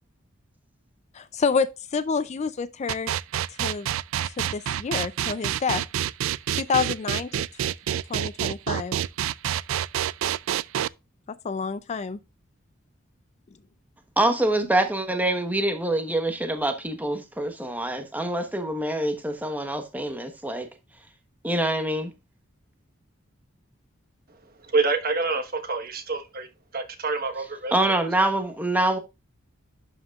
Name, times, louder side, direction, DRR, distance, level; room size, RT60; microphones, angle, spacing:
voice 1, 1.1-3.1 3.5-3.9 4.4-5.8 6.5-7.3 8.1-9.0 11.3-12.2, left 5 dB, 35° left, 0.4 m, -28 dB
sound 1, 2.9-10.9, right 11 dB, 90° right, 0.3 m, -27 dB
voice 2, 14.2-20.7 21.4-22.1 27.7-29.0, right 1 dB, 10° right, 1.1 m, -25 dB
voice 3, 24.6-26.5 26.7-28.0, right 3 dB, 50° right, 1.3 m, -27 dB
11.5 x 5.0 x 2.4 m
head